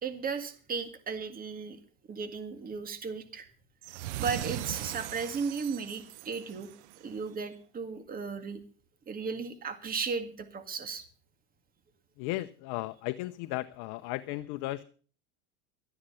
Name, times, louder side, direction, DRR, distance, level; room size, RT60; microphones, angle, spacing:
voice 1, 0.0-1.8 2.1-3.5 4.2-6.7 7.0-8.6 9.1-11.0, right 5 dB, 25° right, 9 dB, 2.0 m, -35 dB
sound 1, 3.8-7.1, right 15 dB, 80° right, 0.7 m, -39 dB
voice 2, 12.2-14.8, left 18 dB, 55° left, 11 dB, 0.8 m, -35 dB
12.5 x 11.0 x 5.8 m, 0.40 s
supercardioid pair, 115°, 34 cm